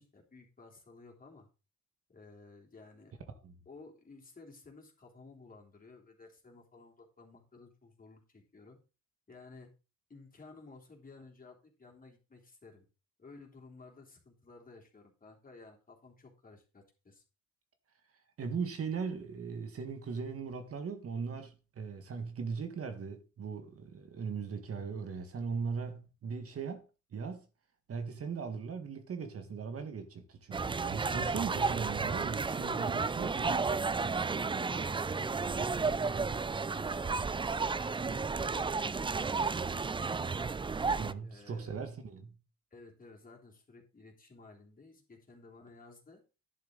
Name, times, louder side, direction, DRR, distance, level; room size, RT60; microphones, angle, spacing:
voice 1, 0.0-1.5 2.1-3.2 3.7-8.8 9.3-9.7 10.1-12.9 13.2-17.2 34.3-37.3 37.6-40.4 41.2-41.8 42.7-46.2, left 3 dB, 30° left, 3.6 m, -55 dB
voice 2, 18.4-26.8 27.1-27.5 27.9-33.7 41.0-42.4, right 5 dB, 50° right, 1.6 m, -39 dB
sound 1, 30.5-41.1, right 4 dB, 15° right, 0.4 m, -32 dB
11.0 x 6.9 x 3.9 m
cardioid pair, 90°, 30 cm